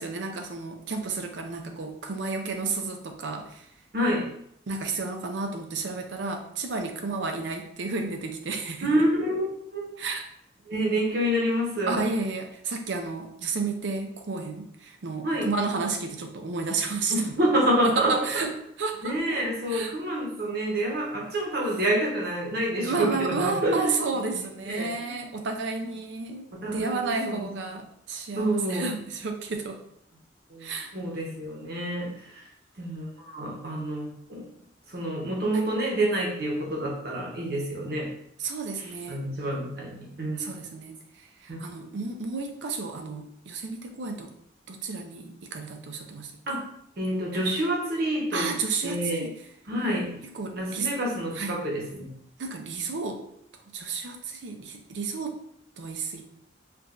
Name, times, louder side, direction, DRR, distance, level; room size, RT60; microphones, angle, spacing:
voice 1, 0.0-3.7 4.7-8.9 10.0-10.3 11.9-17.1 17.8-18.5 18.8-19.4 19.7-19.9 22.8-29.8 30.6-30.9 35.5-35.6 38.4-39.2 40.4-44.3 44.7-46.6 48.3-49.4 50.3-50.9 51.3-51.6 52.4-53.2 53.7-55.4 55.8-56.2, right 4 dB, 70° right, 4 dB, 0.5 m, -32 dB
voice 2, 3.9-4.3 8.8-10.0 10.7-12.0 15.2-15.5 17.1-18.5 19.0-24.0 24.2-24.3 24.7-25.3 26.6-27.4 28.4-28.9 30.5-32.5 32.8-34.5 34.9-38.1 39.1-40.4 41.5-41.6 46.5-46.6 47.0-48.5 48.8-49.3 49.7-50.2 50.5-52.1, right 1 dB, 55° right, -2 dB, 0.9 m, -28 dB
4.6 x 2.5 x 2.5 m, 0.72 s
head